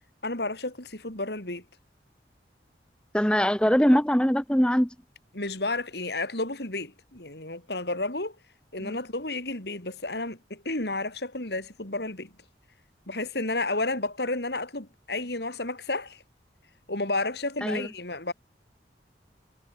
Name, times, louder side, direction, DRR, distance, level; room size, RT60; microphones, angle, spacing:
voice 1, 0.2-1.6 5.3-8.4 8.7-12.3 13.1-16.2 16.9-18.3, left 2 dB, 65° left, 4.2 m, -31 dB
voice 2, 3.1-4.9 8.8-9.0 17.6-17.9, equal, 5° left, 1.3 m, -22 dB
head